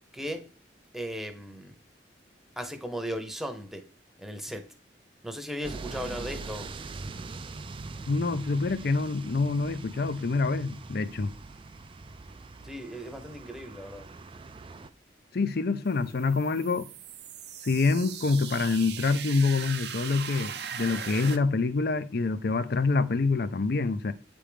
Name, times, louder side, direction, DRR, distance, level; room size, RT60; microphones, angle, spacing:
voice 1, 0.1-0.5 0.9-1.8 2.6-3.8 4.2-4.7 5.2-6.7 12.6-14.1, equal, ahead, 0.8 m, -36 dB
sound 1, 5.6-14.9, right 3 dB, 30° right, 0.4 m, -42 dB
voice 2, 8.1-11.3 15.3-16.9 17.6-24.1, left 3 dB, 60° left, 0.6 m, -26 dB
sound 2, 15.9-21.4, right 8 dB, 65° right, 0.7 m, -39 dB
8.7 x 3.4 x 5.1 m
head